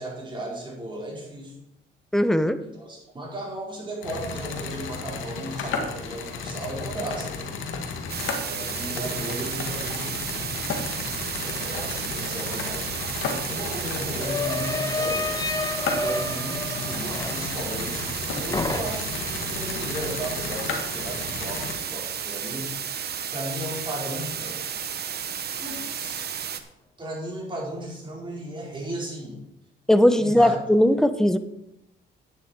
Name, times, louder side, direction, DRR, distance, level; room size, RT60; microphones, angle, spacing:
voice 1, 0.0-1.5 2.6-7.5 8.4-10.3 11.4-15.4 15.9-22.7 23.3-24.6 25.6-26.3 27.0-29.4 30.2-30.5, right 1 dB, 25° right, -3 dB, 4.9 m, -35 dB
voice 2, 2.1-2.6 29.9-31.4, left 1 dB, ahead, 11 dB, 0.8 m, -19 dB
sound 1, 4.0-21.7, left 4 dB, 90° left, 1.7 m, -33 dB
sound 2, 8.1-26.6, right 8 dB, 55° right, 1.1 m, -33 dB
sound 3, 12.6-12.7 13.0-18.2 18.5-19.3, left 3 dB, 20° left, 1.1 m, -31 dB
10.0 x 9.7 x 4.7 m, 0.83 s
cardioid pair, 90°, 20 cm